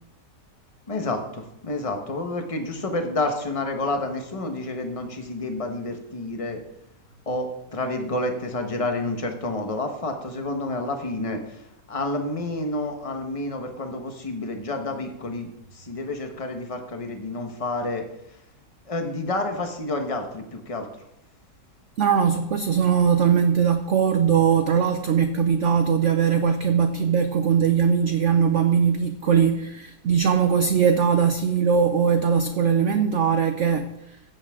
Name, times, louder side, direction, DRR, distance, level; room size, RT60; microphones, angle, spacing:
voice 1, 0.9-6.6 7.3-18.4 18.9-20.9, left 2 dB, 20° left, 1.1 m, -29 dB
voice 2, 22.0-33.9, right 7 dB, 60° right, 0.8 m, -20 dB
15.0 x 8.5 x 3.7 m
omnidirectional pair, 1.9 m